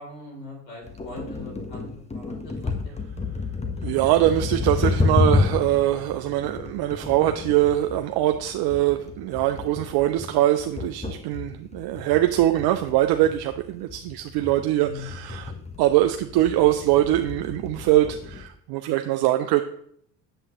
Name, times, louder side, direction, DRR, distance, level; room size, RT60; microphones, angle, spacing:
voice 1, 0.0-3.3 14.8-15.1, left 2 dB, 85° left, -1 dB, 3.4 m, -41 dB
sound 1, 0.8-18.5, left 3 dB, 15° left, 1.0 m, -30 dB
voice 2, 3.8-15.5 15.8-19.6, right 14 dB, 50° right, 7 dB, 0.6 m, -22 dB
8.0 x 7.5 x 3.0 m, 0.67 s
hypercardioid pair, 75°, 49 cm